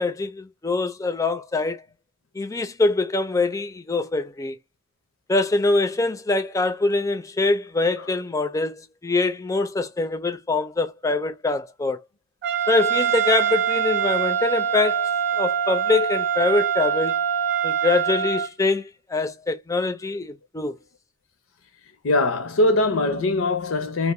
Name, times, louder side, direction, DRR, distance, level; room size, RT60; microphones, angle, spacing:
voice 1, 0.0-1.8 2.3-4.6 5.3-12.0 12.7-15.1 15.3-17.2 17.6-20.8, left 3 dB, 15° left, 0.4 m, -24 dB
Trumpet, 12.4-18.5, right 8 dB, 55° right, 0.6 m, -24 dB
voice 2, 22.0-24.1, left 2 dB, 80° left, 0.6 m, -22 dB
2.7 x 2.0 x 3.1 m
head